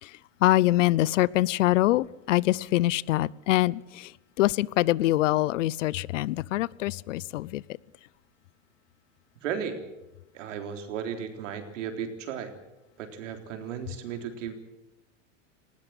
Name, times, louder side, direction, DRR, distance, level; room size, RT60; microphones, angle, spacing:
voice 1, 0.4-4.1 4.4-7.6, left 16 dB, 80° left, 0.7 m, -24 dB
voice 2, 9.4-9.8 10.3-12.5 13.0-14.5, right 7 dB, 80° right, 3.8 m, -35 dB
19.5 x 17.0 x 9.0 m
hypercardioid pair, 110°, 37 cm